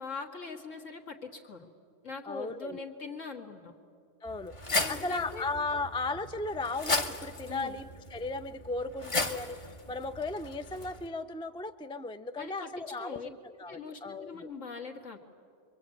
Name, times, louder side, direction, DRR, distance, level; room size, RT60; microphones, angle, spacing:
voice 1, 0.0-1.7 2.0-3.7 4.8-5.4 7.5-7.8 12.4-12.7 13.0-13.3 13.7-15.2, left 4 dB, 70° left, 2 dB, 2.6 m, -41 dB
voice 2, 2.3-2.9 4.2-4.5 4.9-14.5, left 3 dB, 10° left, 10 dB, 0.3 m, -36 dB
sound 1, 4.3-11.0, left 2 dB, 25° left, 1.1 m, -36 dB
27.5 x 23.5 x 8.6 m, 2.3 s
omnidirectional pair, 1.4 m